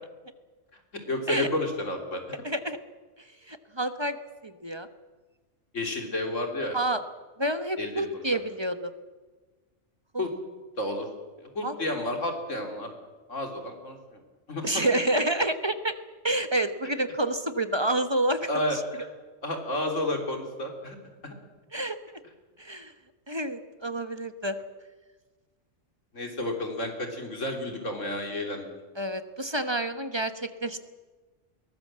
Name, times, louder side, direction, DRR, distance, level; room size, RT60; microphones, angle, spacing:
voice 1, 1.1-2.2 5.7-6.8 7.8-8.1 10.2-10.3 10.8-11.1 11.4-12.9 13.3-14.0 14.5-14.6 18.5-19.1 19.4-21.0 21.2-21.3 26.1-28.7, left 1 dB, 85° left, 4 dB, 3.7 m, -31 dB
voice 2, 2.4-2.8 3.5-4.2 4.4-4.9 6.7-7.0 7.4-8.9 10.1-10.2 11.6-11.7 14.6-15.9 16.2-18.8 21.7-22.0 22.6-22.9 23.3-24.6 29.0-30.8, right 1 dB, 25° right, 10 dB, 1.1 m, -28 dB
22.0 x 19.0 x 7.6 m, 1.3 s
omnidirectional pair, 1.3 m